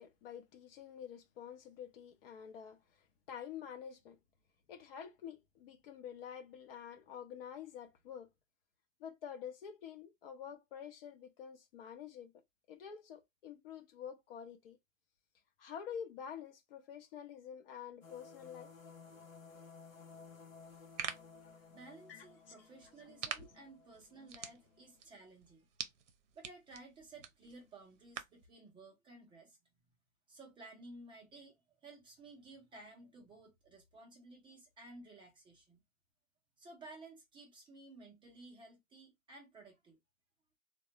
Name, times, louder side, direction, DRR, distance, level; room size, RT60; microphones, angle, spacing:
voice 1, 0.0-4.2 4.7-8.3 9.0-12.3 12.7-14.8 15.6-18.7 21.4-21.5 22.1-22.3 23.4-23.5, left 8 dB, 45° left, 0.7 m, -48 dB
sound 1, 18.0-25.0, left 5 dB, 85° left, 0.7 m, -57 dB
sound 2, 20.6-28.5, right 8 dB, 65° right, 0.7 m, -48 dB
voice 2, 21.7-25.7 26.3-29.6 30.3-35.8 36.6-40.0, right 2 dB, 10° right, 0.6 m, -55 dB
3.4 x 2.2 x 2.8 m
figure-of-eight pair, 105°, 39 cm